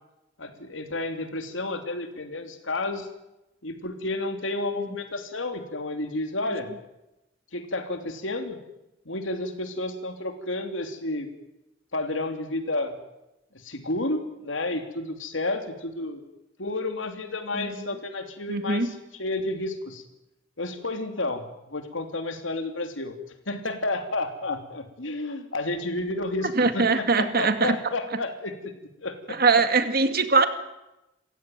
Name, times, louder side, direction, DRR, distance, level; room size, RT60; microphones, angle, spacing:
voice 1, 0.4-3.1 3.6-6.7 7.5-8.6 9.0-11.3 11.9-13.0 13.5-16.2 16.6-20.0 20.6-23.2 23.5-28.7 29.0-29.4, left 2 dB, 90° left, 7 dB, 3.0 m, -31 dB
voice 2, 18.5-18.9 26.6-27.7 29.4-30.5, right 4 dB, 55° right, 9 dB, 2.2 m, -21 dB
27.5 x 16.0 x 9.2 m, 0.95 s
head